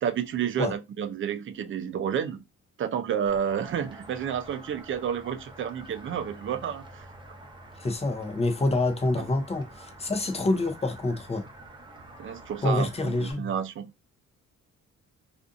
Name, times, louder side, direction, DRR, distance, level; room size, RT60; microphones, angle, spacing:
voice 1, 0.0-2.4 2.8-7.1 12.2-13.9, right 8 dB, 40° right, 0.4 m, -30 dB
sound 1, 3.3-13.3, right 1 dB, 15° right, 0.7 m, -48 dB
voice 2, 7.8-11.5 12.6-13.5, left 2 dB, 20° left, 0.6 m, -27 dB
2.5 x 2.5 x 2.5 m
cardioid pair, 90°, 30 cm